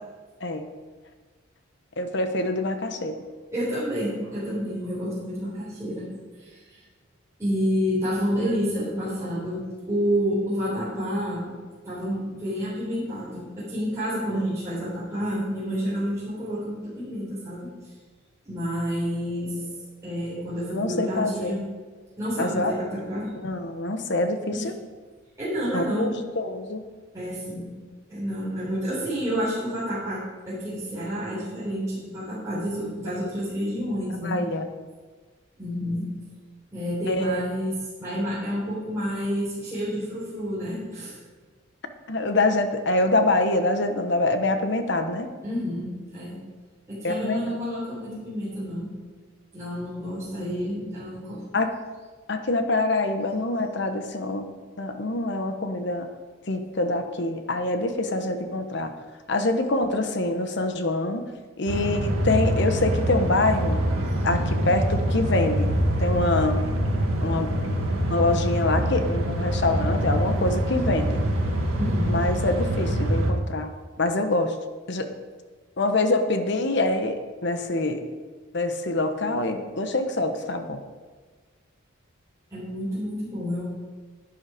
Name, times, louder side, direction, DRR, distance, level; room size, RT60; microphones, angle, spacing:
voice 1, 2.0-3.2 20.7-21.6 22.4-22.7 23.4-24.7 25.7-26.8 34.2-34.7 37.1-37.4 42.1-45.3 47.0-47.6 51.5-51.7 52.3-54.5 54.8-56.1 56.5-58.9 59.3-61.3 61.6-63.9 64.2-65.7 66.0-66.7 67.2-67.5 68.1-71.2 72.1-74.6 74.9-75.1 75.8-78.0 78.5-80.8, left 2 dB, 55° left, 7 dB, 1.0 m, -25 dB
voice 2, 3.5-6.0 6.4-6.8 7.4-9.6 9.9-11.5 11.8-17.7 18.5-19.7 20.0-21.6 22.1-23.3 24.5-24.7 25.4-26.1 27.1-27.7 28.1-30.2 30.5-34.4 35.6-36.1 36.7-41.2 45.4-46.4 46.9-48.9 49.5-51.5 71.8-72.1 82.5-83.6, equal, 15° right, -11 dB, 3.8 m, -29 dB
sound 1, 61.7-73.3, equal, 90° right, 1.8 m, -25 dB
11.0 x 9.6 x 5.0 m, 1.4 s
head